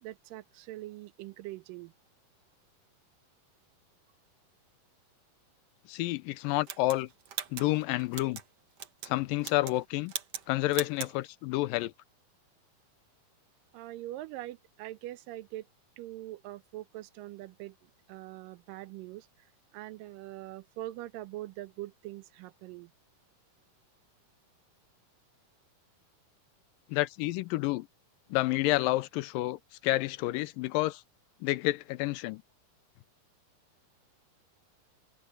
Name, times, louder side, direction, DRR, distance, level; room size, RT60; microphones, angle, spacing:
voice 1, 0.0-1.9 13.7-15.7 16.0-22.9, right 16 dB, 80° right, 2.3 m, -43 dB
voice 2, 5.9-7.1 7.5-8.4 9.1-10.1 10.5-11.9 26.9-27.9 28.3-31.0 31.4-32.4, left 18 dB, 85° left, 2.3 m, -29 dB
sound 1, 6.7-8.5 8.8-9.1 9.4-9.8 10.1-10.5 10.7-11.1, right 9 dB, 55° right, 2.1 m, -39 dB
omnidirectional pair, 4.0 m